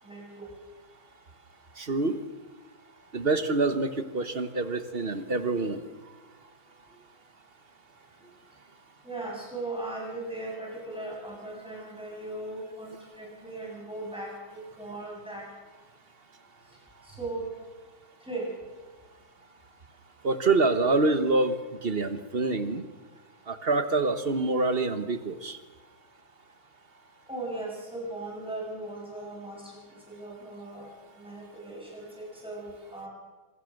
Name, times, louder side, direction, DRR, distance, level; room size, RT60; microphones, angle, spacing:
voice 1, 0.0-0.5 9.0-15.5 16.7-17.5 18.2-18.5 27.3-30.9 31.1-33.1, right 2 dB, ahead, -3 dB, 7.8 m, -38 dB
voice 2, 1.8-2.2 3.1-5.8 20.2-21.6 21.8-22.8 23.5-25.6, right 3 dB, 35° right, 10 dB, 1.1 m, -26 dB
26.5 x 19.0 x 6.5 m, 1.3 s
omnidirectional pair, 2.1 m